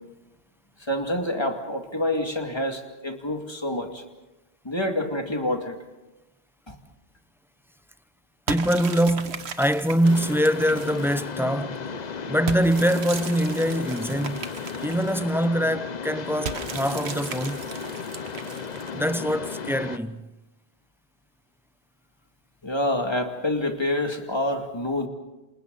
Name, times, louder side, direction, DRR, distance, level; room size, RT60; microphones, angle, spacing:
voice 1, 0.9-4.0 4.6-5.8 6.7-6.8 22.6-25.1, left 1 dB, 25° left, 2.4 m, -27 dB
voice 2, 8.5-11.8 12.3-14.5 14.8-17.6 18.9-20.3, equal, 5° right, 0.6 m, -24 dB
sound 1, 8.5-11.4 12.5-15.5 16.4-19.1, right 6 dB, 75° right, 1.4 m, -37 dB
Mechanisms, 10.0-20.0, left 5 dB, 45° left, 0.9 m, -35 dB
28.5 x 27.5 x 4.1 m
omnidirectional pair, 1.1 m